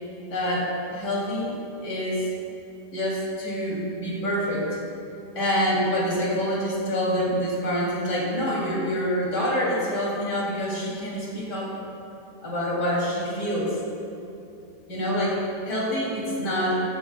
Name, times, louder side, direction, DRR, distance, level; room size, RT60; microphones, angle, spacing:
voice 1, 0.3-1.5 1.8-2.2 2.9-4.7 5.4-11.7 12.4-13.8 14.9-16.8, equal, 75° left, -7 dB, 3.8 m, -26 dB
16.0 x 15.0 x 2.3 m, 2.7 s
omnidirectional pair, 1.8 m